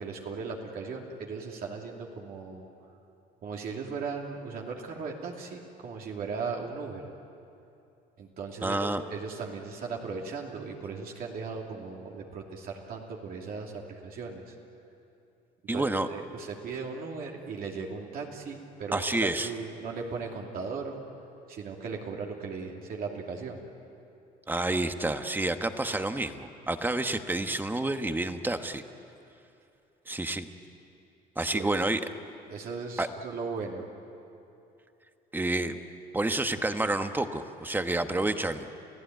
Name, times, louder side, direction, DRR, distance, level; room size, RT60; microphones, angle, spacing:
voice 1, 0.0-2.7 3.4-7.1 8.2-14.5 15.7-21.0 21.5-23.6 31.4-31.8 32.5-33.9, right 4 dB, 60° right, 0 dB, 2.8 m, -37 dB
voice 2, 8.6-9.0 15.7-16.1 18.9-19.5 24.5-28.8 30.1-30.5 31.4-32.0 33.0-33.1 35.3-35.8 36.1-38.7, right 2 dB, 10° right, 8 dB, 1.3 m, -29 dB
30.0 x 15.5 x 9.3 m, 2.7 s
cardioid pair, 110°, 17 cm